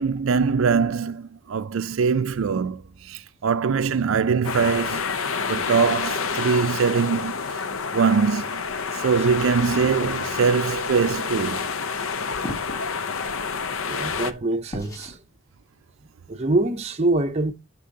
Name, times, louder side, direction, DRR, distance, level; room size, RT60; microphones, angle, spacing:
voice 1, 0.0-5.1 5.5-7.6 7.9-8.6 8.9-11.7, right 5 dB, 70° right, 0.4 m, -23 dB
sound 1, 4.4-14.3, left 5 dB, 75° left, 0.7 m, -28 dB
sound 2, 12.4-12.8 14.7-15.2, left 1 dB, 15° left, 1.8 m, -34 dB
voice 2, 13.9-15.2 16.3-17.5, right 2 dB, 30° right, 0.6 m, -24 dB
10.0 x 6.0 x 2.7 m
head